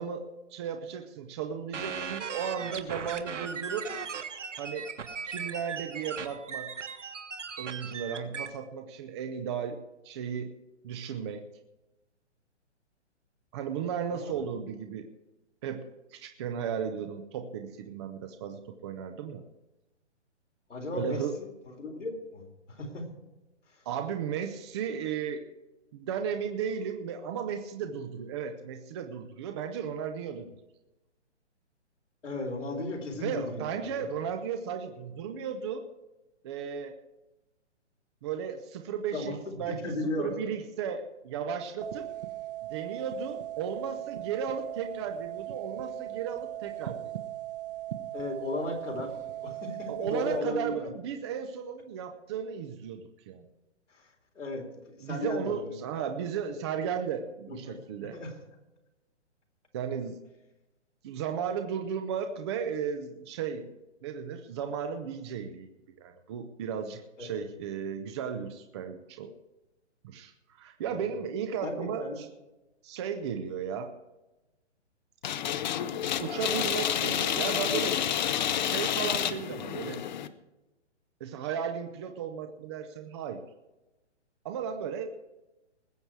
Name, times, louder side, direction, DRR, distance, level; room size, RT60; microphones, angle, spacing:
voice 1, 0.0-3.9 4.6-4.9 5.2-6.7 7.6-9.8 10.0-10.6 10.8-11.4 13.5-15.1 15.6-15.8 16.1-19.4 20.9-21.4 23.9-25.4 25.9-30.5 33.2-35.8 36.4-36.9 38.2-39.3 39.6-42.1 42.6-47.1 49.9-53.5 55.0-58.2 59.7-60.2 61.0-63.7 64.0-65.7 66.0-69.3 70.0-72.3 72.8-73.9 76.2-78.0 78.6-80.0 81.2-83.4 84.4-85.1, right 7 dB, 25° right, 6 dB, 0.6 m, -35 dB
sound 1, 1.7-8.5, right 6 dB, 85° right, 1.5 m, -38 dB
voice 2, 14.1-14.5 20.7-23.0 32.2-34.1 39.1-40.5 48.1-49.1 49.4-50.9 53.9-54.1 54.4-55.7 57.5-57.8 58.1-58.3 67.2-67.5 70.9-71.1 71.6-72.2, left 2 dB, 90° left, 2 dB, 4.0 m, -36 dB
sound 2, 41.8-50.4, right 14 dB, 50° right, 1.2 m, -38 dB
sound 3, 75.2-80.3, left 10 dB, 40° left, 0.7 m, -29 dB
20.5 x 7.8 x 4.6 m, 1.0 s
hypercardioid pair, 150°, 35 cm